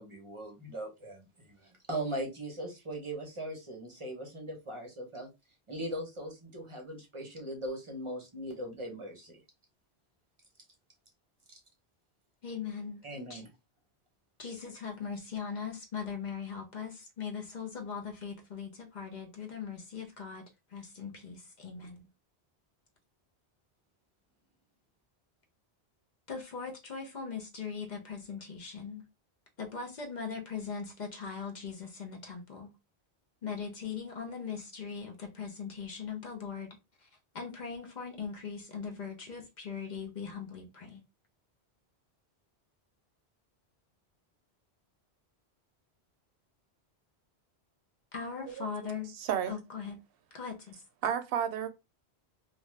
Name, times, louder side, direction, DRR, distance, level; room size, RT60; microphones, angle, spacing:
voice 1, 0.0-5.3 5.7-9.4 11.5-11.6 13.0-13.5, right 1 dB, 35° right, 0.7 m, -39 dB
voice 2, 12.4-13.4 14.4-22.1 26.3-29.0 29.6-32.7 33.4-37.1 37.3-41.0 48.1-49.1 49.5-50.0 50.3-50.8, left 6 dB, 50° left, 0.7 m, -40 dB
voice 3, 49.2-49.5 51.0-51.7, right 9 dB, 65° right, 0.8 m, -31 dB
2.5 x 2.3 x 3.1 m
omnidirectional pair, 1.1 m